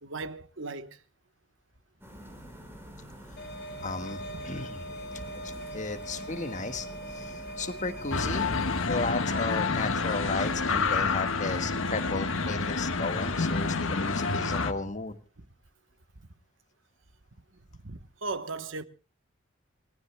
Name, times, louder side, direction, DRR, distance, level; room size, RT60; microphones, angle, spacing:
voice 1, 0.0-1.0 17.8-18.8, right 3 dB, 65° right, 1.2 m, -37 dB
sound 1, 2.0-8.9, equal, 10° right, 5.7 m, -46 dB
sound 2, 3.4-8.4, right 1 dB, 55° left, 4.5 m, -41 dB
voice 2, 3.8-4.8 5.3-5.4 5.7-15.2, left 3 dB, 40° left, 1.7 m, -34 dB
sound 3, 8.1-14.7, left 4 dB, 80° left, 1.5 m, -28 dB
29.0 x 18.5 x 2.3 m
head